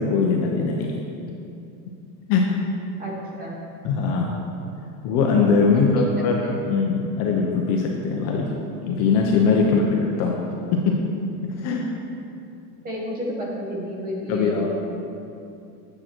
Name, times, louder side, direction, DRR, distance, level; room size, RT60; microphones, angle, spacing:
voice 1, 0.1-0.9 2.3-2.4 3.8-4.4 5.0-8.5 8.8-9.8 10.2-10.4 10.7-10.9 11.4-11.9 14.3-14.7, left 5 dB, 35° left, -1 dB, 0.7 m, -21 dB
voice 2, 3.0-3.6 5.6-6.1 9.5-9.8 12.8-14.7, equal, 20° right, -2 dB, 1.2 m, -31 dB
8.9 x 7.7 x 4.4 m, 2.6 s
supercardioid pair, 175°, 48 cm